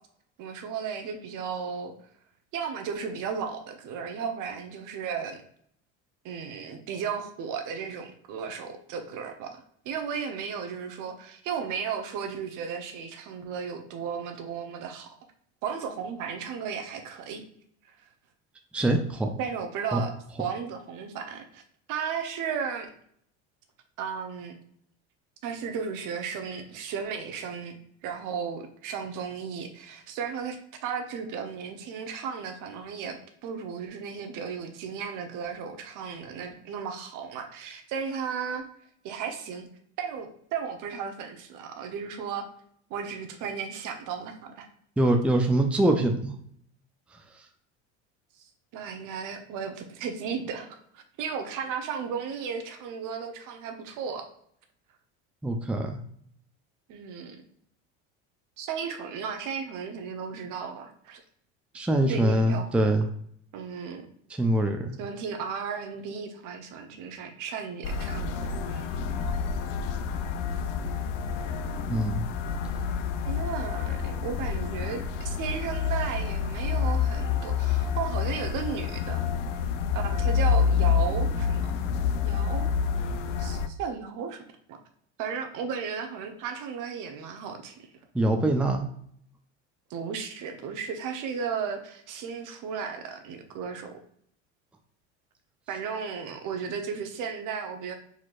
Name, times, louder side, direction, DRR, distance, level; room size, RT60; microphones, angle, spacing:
voice 1, 0.4-1.9 2.5-5.4 6.2-15.2 15.6-17.4 17.8-17.9 19.4-20.1 20.4-21.6 21.9-22.9 24.0-24.6 25.4-27.8 28.0-38.6 39.0-39.7 40.0-42.5 42.9-44.7 48.7-50.7 50.9-54.3 56.9-57.4 58.6-61.2 62.1-62.7 63.5-64.1 65.0-69.0 73.2-79.2 80.0-81.7 82.2-82.7 83.4-84.4 84.7-84.8 85.2-87.9 89.9-94.0 95.7-97.9, right 6 dB, 60° right, 5 dB, 1.0 m, -35 dB
voice 2, 18.7-19.3 19.9-20.0 45.0-46.3 47.1-47.2 55.4-56.0 61.7-63.1 64.4-65.0 71.9-72.2 88.1-88.8, right 1 dB, 5° right, 4 dB, 0.5 m, -24 dB
sound 1, 67.8-83.7, left 6 dB, 80° left, 0.6 m, -28 dB
4.5 x 4.2 x 2.5 m, 0.65 s
hypercardioid pair, 85°, 36 cm